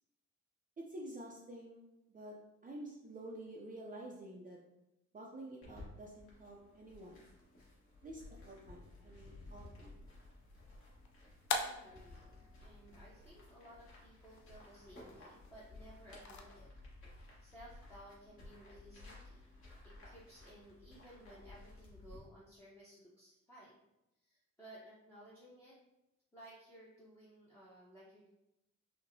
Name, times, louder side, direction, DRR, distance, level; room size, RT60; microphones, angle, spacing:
voice 1, 0.8-2.4 2.6-4.6 5.1-7.2 8.0-9.9, right 1 dB, 30° right, -2 dB, 0.5 m, -49 dB
sound 1, 5.6-22.2, left 2 dB, 45° left, 1.4 m, -56 dB
sound 2, 10.0-16.4, left 4 dB, 65° left, 0.5 m, -45 dB
voice 2, 11.5-16.7 17.1-19.5 19.8-23.8 24.2-25.8 26.3-28.3, right 1 dB, 10° left, -7 dB, 0.8 m, -58 dB
5.3 x 2.1 x 2.7 m, 0.90 s
cardioid pair, 105°, 29 cm